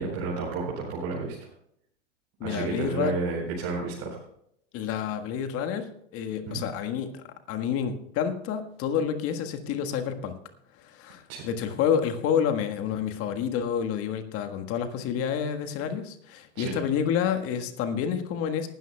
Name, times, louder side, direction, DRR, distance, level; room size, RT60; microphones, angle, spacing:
voice 1, 0.0-1.3 2.4-4.2 6.4-6.6 11.3-11.4 16.5-16.7, right 4 dB, 40° right, -4 dB, 4.2 m, -31 dB
voice 2, 2.4-3.1 4.7-10.4 10.8-18.7, left 8 dB, 35° left, 7 dB, 1.6 m, -29 dB
19.0 x 13.0 x 2.3 m, 0.72 s
hypercardioid pair, 105°, 38 cm